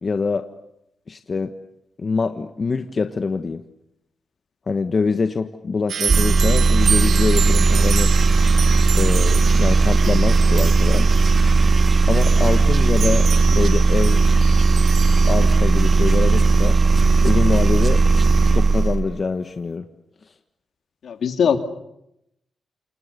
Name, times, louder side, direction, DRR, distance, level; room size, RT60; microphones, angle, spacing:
voice 1, 0.0-0.4 1.1-1.5 2.0-3.6 4.7-8.1 9.0-11.1 12.1-14.2 14.7-14.8 15.3-16.8 17.2-18.0 18.5-19.9, left 4 dB, 45° left, 7 dB, 1.4 m, -24 dB
sound 1, 5.9-15.3, right 8 dB, 75° right, 1.0 m, -29 dB
sound 2, 6.1-19.0, right 3 dB, 45° right, 1.8 m, -16 dB
voice 2, 21.0-21.6, left 7 dB, 75° left, 6 dB, 2.7 m, -20 dB
28.5 x 27.0 x 6.9 m, 0.82 s
cardioid pair, 70°, 0 cm